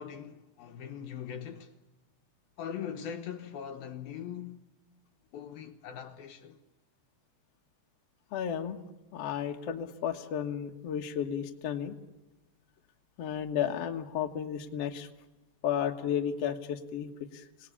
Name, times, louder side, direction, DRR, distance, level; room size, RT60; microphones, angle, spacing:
voice 1, 0.0-1.8 2.6-4.7 5.3-6.6, left 8 dB, 70° left, 2.7 m, -41 dB
voice 2, 8.3-8.8 9.1-12.0 13.2-15.1 15.6-17.4, left 9 dB, 55° left, 1.9 m, -33 dB
28.0 x 19.0 x 8.7 m
omnidirectional pair, 4.8 m